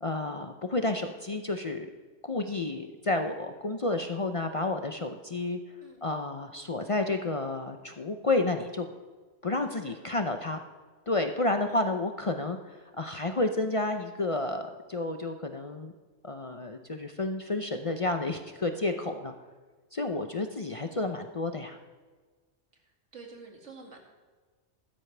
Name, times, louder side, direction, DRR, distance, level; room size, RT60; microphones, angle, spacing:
voice 1, 0.0-1.9 2.2-5.6 6.0-8.9 9.4-10.6 11.1-15.9 16.2-19.3 19.9-21.8, left 2 dB, 35° left, 6 dB, 0.6 m, -31 dB
voice 2, 23.1-24.1, right 4 dB, 90° right, 1 dB, 2.4 m, -48 dB
15.5 x 13.0 x 3.3 m, 1.4 s
omnidirectional pair, 1.2 m